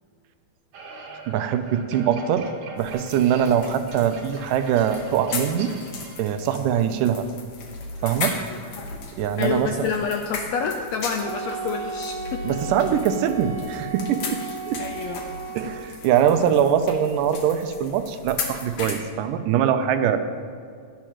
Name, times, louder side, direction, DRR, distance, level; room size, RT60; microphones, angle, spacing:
sound 1, 0.7-6.2, right 3 dB, 65° right, 2.3 m, -42 dB
voice 1, 1.3-2.5 2.8-5.7 6.2-7.3 8.0-8.4 9.2-9.9 12.4-14.4 14.7-14.8 15.6-20.2, right 9 dB, 85° right, 9 dB, 2.3 m, -22 dB
sound 2, 2.8-19.0, left 4 dB, 65° left, 2.4 m, -37 dB
voice 2, 8.3-8.8 9.4-12.8 14.4-15.3 15.6-15.8, left 6 dB, 85° left, 4 dB, 1.5 m, -29 dB
Wind instrument woodwind instrument, 11.2-16.1, right 5 dB, 35° right, 2.2 m, -35 dB
16.0 x 11.5 x 3.0 m, 2.2 s
omnidirectional pair, 3.8 m